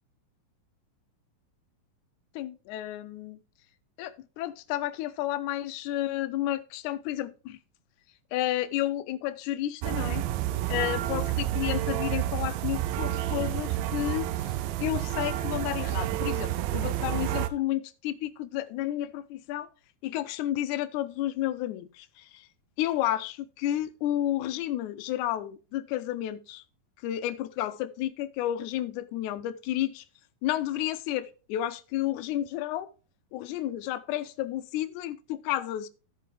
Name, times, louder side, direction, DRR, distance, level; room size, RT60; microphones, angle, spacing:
voice 1, 2.3-3.4 4.0-7.6 8.3-10.2 10.7-14.3 14.8-19.7 20.0-22.5 22.8-26.6 27.0-30.0 30.4-32.9 33.3-35.9, left 13 dB, 80° left, 1.8 m, -31 dB
sound 1, 9.8-17.5, right 14 dB, 85° right, 2.3 m, -30 dB
14.0 x 5.4 x 3.3 m
omnidirectional pair, 4.1 m